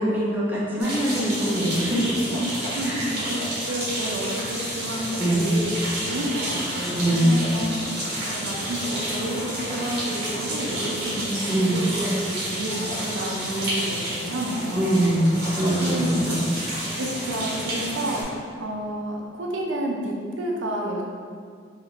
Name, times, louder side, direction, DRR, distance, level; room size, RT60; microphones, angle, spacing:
voice 1, 0.0-2.2 2.8-3.2 5.2-5.5 6.9-7.4 11.5-11.8 14.7-16.0 16.2-16.5, right 1 dB, 10° right, -7 dB, 0.7 m, -23 dB
sound 1, 0.8-18.2, right 1 dB, 60° right, 1.2 m, -30 dB
voice 2, 2.4-5.7 6.1-15.1 15.8-16.2 17.0-21.0, right 1 dB, 85° right, -1 dB, 0.5 m, -30 dB
2.8 x 2.5 x 4.3 m, 2.1 s
head